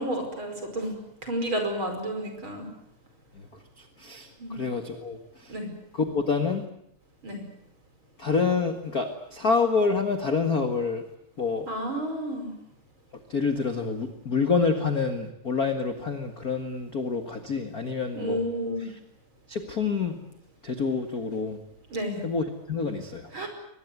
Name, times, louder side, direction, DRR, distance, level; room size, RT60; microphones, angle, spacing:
voice 1, 0.0-2.7 4.4-4.5 5.5-5.7 7.2-7.4 11.7-12.5 18.1-18.9 21.9-22.2 23.3-23.5, right 1 dB, 35° right, 5 dB, 5.9 m, -31 dB
voice 2, 4.0-5.2 5.4-5.5 5.9-6.6 8.2-11.0 11.4-11.7 13.3-18.4 19.5-20.2 20.6-21.6 22.2-23.3, left 4 dB, 35° left, 7 dB, 1.6 m, -27 dB
23.5 x 20.5 x 9.5 m, 0.73 s
omnidirectional pair, 3.9 m